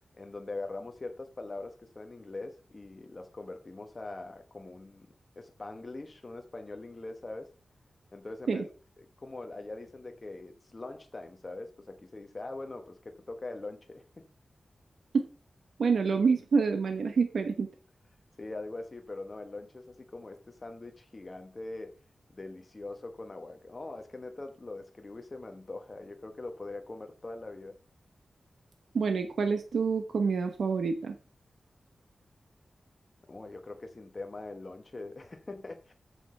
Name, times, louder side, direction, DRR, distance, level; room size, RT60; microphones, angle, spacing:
voice 1, 0.1-7.5 8.1-8.6 9.0-14.3 18.4-22.0 22.3-27.8 33.3-35.9, left 2 dB, 35° left, 1.1 m, -42 dB
voice 2, 15.8-17.7 28.9-31.2, right 5 dB, 90° right, 1.1 m, -27 dB
8.1 x 6.8 x 5.4 m
wide cardioid pair, 110°, 0 cm